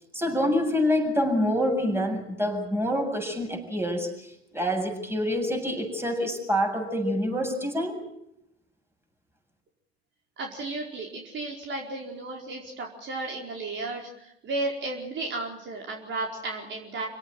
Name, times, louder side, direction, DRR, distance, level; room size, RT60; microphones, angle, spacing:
voice 1, 0.1-4.1 4.5-8.0, equal, 5° right, 4 dB, 7.8 m, -26 dB
voice 2, 10.4-17.1, right 2 dB, 35° right, 1 dB, 4.8 m, -34 dB
28.0 x 18.0 x 7.8 m, 0.82 s
hypercardioid pair, 75°, 31 cm